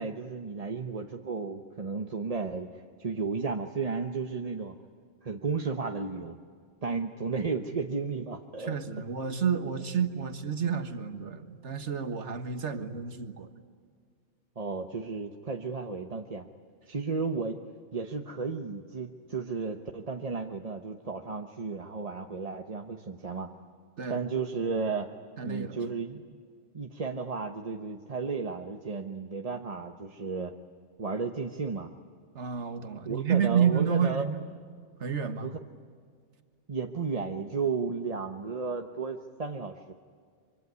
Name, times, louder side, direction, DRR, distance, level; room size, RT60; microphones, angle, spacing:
voice 1, 0.0-4.8 5.2-6.3 6.8-8.7 14.6-16.5 16.9-17.6 17.9-23.5 24.1-25.1 25.4-26.2 26.7-30.5 31.0-31.9 33.1-34.4 35.4-35.5 36.7-39.9, right 4 dB, 35° right, 4 dB, 1.0 m, -33 dB
voice 2, 8.6-13.5 24.0-24.2 25.4-25.9 32.4-34.4 35.0-35.5, right 7 dB, 70° right, 9 dB, 1.8 m, -30 dB
25.0 x 24.5 x 9.6 m, 2.1 s
omnidirectional pair, 1.3 m